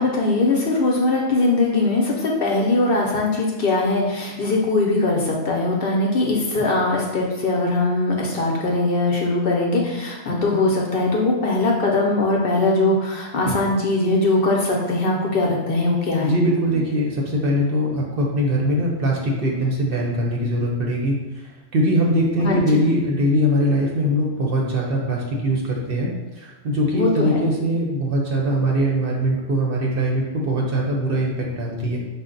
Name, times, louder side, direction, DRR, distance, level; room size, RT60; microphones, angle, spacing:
voice 1, 0.0-16.4 22.4-22.6 26.9-27.4, left 2 dB, 60° left, -1 dB, 0.7 m, -21 dB
voice 2, 16.2-21.4 21.7-26.1 26.4-32.0, equal, 55° right, -1 dB, 0.7 m, -22 dB
5.3 x 2.1 x 3.7 m, 1.1 s
omnidirectional pair, 1.3 m